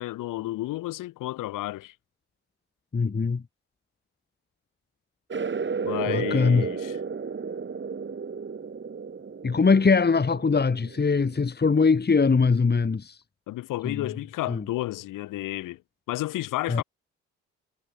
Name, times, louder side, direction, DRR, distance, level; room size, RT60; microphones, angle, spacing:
voice 1, 0.0-1.9 5.8-7.0 13.5-15.8 16.1-16.8, left 16 dB, 75° left, 7.7 m, -31 dB
voice 2, 2.9-3.4 6.1-6.7 9.4-13.2 13.8-13.9 14.5-14.6 16.7-16.8, left 4 dB, 30° left, 2.3 m, -22 dB
sound 1, 5.3-11.5, right 5 dB, 35° right, 2.6 m, -33 dB
hypercardioid pair, 50°, 32 cm